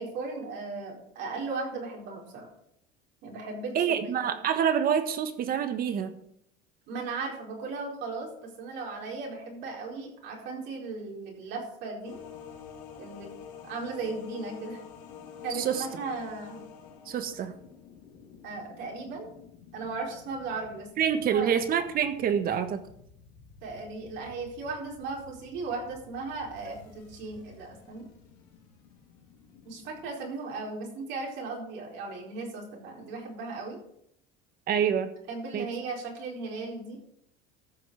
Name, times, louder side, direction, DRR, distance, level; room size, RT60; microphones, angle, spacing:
voice 1, 0.0-2.5 3.2-4.3 6.9-12.2 13.0-13.3 13.6-14.8 15.4-16.6 18.4-19.3 19.7-20.9 21.3-21.5 23.6-28.1 29.6-33.8 34.8-34.9 35.3-37.0, right 3 dB, 65° right, -1 dB, 4.7 m, -37 dB
voice 2, 3.7-6.1 15.5-15.9 17.0-17.6 21.0-22.8 26.7-26.8 34.7-35.1 35.5-35.7, right 8 dB, 45° right, 9 dB, 1.6 m, -27 dB
sound 1, 12.0-30.1, left 7 dB, 80° left, 2.6 m, -49 dB
14.0 x 6.1 x 6.3 m, 0.72 s
supercardioid pair, 105°, 20 cm